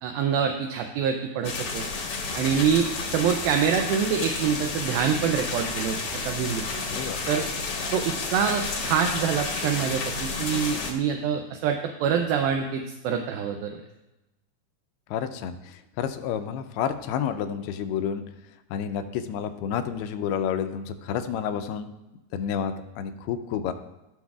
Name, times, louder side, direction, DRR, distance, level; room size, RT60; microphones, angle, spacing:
voice 1, 0.0-1.8 2.3-6.0 6.2-6.6 7.3-7.4 7.9-13.8, right 7 dB, 80° right, 4 dB, 2.3 m, -25 dB
sound 1, 1.4-10.9, left 4 dB, 65° left, 1.5 m, -31 dB
voice 2, 15.1-18.2 18.7-21.9 22.3-23.7, left 8 dB, 85° left, 8 dB, 2.6 m, -30 dB
15.5 x 6.2 x 2.4 m, 0.99 s
omnidirectional pair, 4.5 m